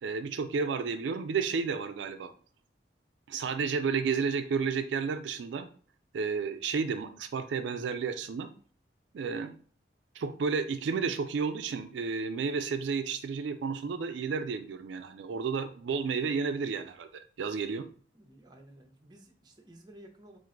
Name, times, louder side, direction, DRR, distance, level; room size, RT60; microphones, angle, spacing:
voice 1, 0.0-2.3 3.3-5.7 6.1-8.5 9.1-9.5 10.1-17.9, right 5 dB, 75° right, 8 dB, 0.3 m, -32 dB
voice 2, 18.1-20.4, right 1 dB, 20° right, 2 dB, 0.6 m, -54 dB
4.5 x 2.5 x 3.7 m, 0.44 s
head